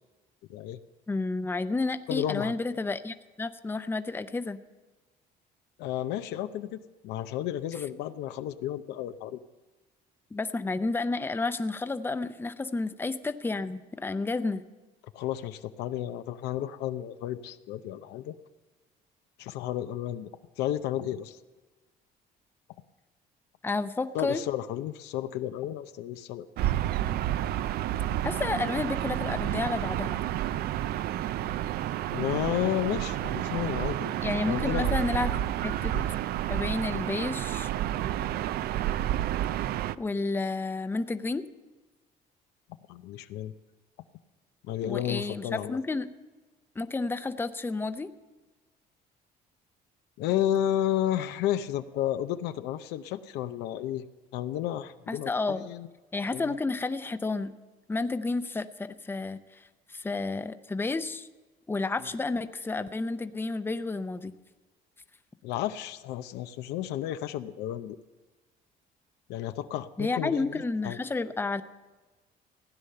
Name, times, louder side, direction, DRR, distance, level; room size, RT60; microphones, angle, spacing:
voice 1, 1.1-4.6 10.3-14.6 23.6-24.4 28.2-30.2 34.2-35.4 35.6-35.9 36.5-37.7 40.0-41.4 44.8-46.1 46.8-48.1 55.1-55.7 56.1-57.5 57.9-59.6 59.9-61.3 61.7-64.3 70.0-71.6, left 3 dB, 15° left, 11 dB, 0.6 m, -31 dB
voice 2, 2.1-2.5 5.8-6.8 7.0-9.4 15.1-18.4 19.4-20.3 20.6-21.4 24.1-26.5 32.1-34.2 34.4-35.4 35.9-36.0 42.9-43.5 44.6-45.8 50.2-54.0 54.3-55.9 56.3-56.5 65.4-68.0 69.3-71.0, left 11 dB, 90° left, 11 dB, 0.6 m, -32 dB
Gull seagull / Ocean, 26.6-40.0, right 13 dB, 65° right, 0.4 m, -30 dB
16.0 x 9.8 x 6.7 m, 1.2 s
cardioid pair, 110°, 17 cm